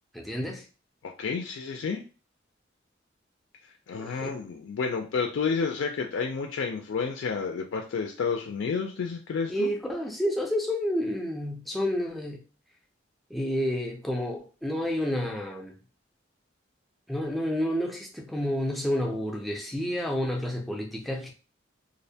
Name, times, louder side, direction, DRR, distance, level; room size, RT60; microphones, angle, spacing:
voice 1, 0.1-0.7 4.0-4.4 9.5-12.4 13.3-15.8 17.1-21.3, equal, ahead, 0.4 m, -30 dB
voice 2, 1.0-2.0 3.9-9.7, left 5 dB, 80° left, 0.3 m, -30 dB
2.5 x 2.1 x 2.6 m
head